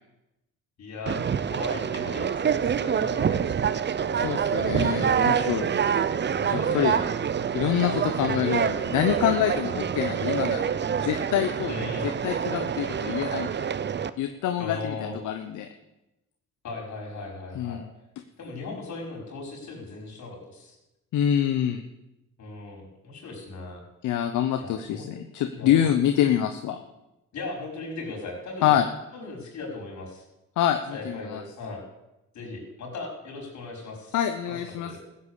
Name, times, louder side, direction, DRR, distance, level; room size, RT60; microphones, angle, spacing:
voice 1, 0.8-3.7 5.5-6.0 6.2-7.1 9.7-9.8 11.7-12.1 14.6-15.2 16.6-17.8 18.4-20.8 22.4-23.8 24.6-25.1 25.5-26.0 27.3-28.7 29.1-30.2 30.9-31.8 32.3-34.2 34.5-35.0, left 3 dB, 65° left, -1 dB, 5.6 m, -38 dB
Conversation, 1.1-14.1, right 7 dB, 35° right, 0.7 m, -26 dB
voice 2, 4.2-5.7 6.7-6.9 7.5-10.7 11.0-11.7 12.0-13.7 14.2-15.7 17.5-17.8 21.1-21.8 24.0-26.8 28.6-28.9 30.6-31.4 34.1-35.0, left 10 dB, 85° left, 7 dB, 1.0 m, -26 dB
14.5 x 8.2 x 8.3 m, 0.94 s
cardioid pair, 90°, 30 cm